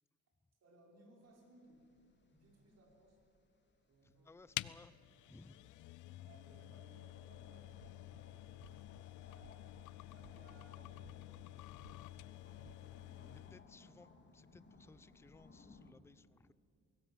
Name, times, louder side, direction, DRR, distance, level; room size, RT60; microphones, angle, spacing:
voice 1, 0.6-1.8 2.2-3.2 3.9-4.5 6.1-9.5 10.1-13.6 13.9-14.0, right 2 dB, 55° right, 0 dB, 6.0 m, -65 dB
sound 1, 1.2-15.9, left 3 dB, 35° left, 3.4 m, -65 dB
voice 2, 4.0-5.6 13.3-16.5, left 3 dB, 10° left, 16 dB, 0.6 m, -61 dB
sound 2, 4.5-13.7, left 16 dB, 80° left, 0.6 m, -50 dB
sound 3, 7.8-8.2 8.6-9.0 9.4-9.8 10.2-10.6 11.0-11.5 11.8-12.3 12.6-12.8, right 8 dB, 80° right, 1.4 m, -62 dB
22.0 x 18.5 x 7.5 m, 2.2 s
cardioid pair, 90°, 30 cm